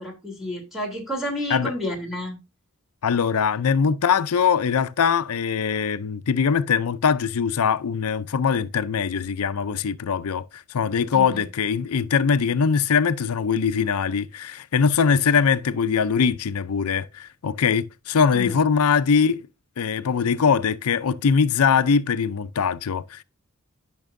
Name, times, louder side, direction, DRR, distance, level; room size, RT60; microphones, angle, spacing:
voice 1, 0.0-2.4 11.1-11.4 18.3-18.6, left 1 dB, ahead, 3.0 m, -30 dB
voice 2, 3.0-19.4 19.8-23.2, left 6 dB, 85° left, 0.5 m, -22 dB
12.5 x 6.0 x 2.6 m
head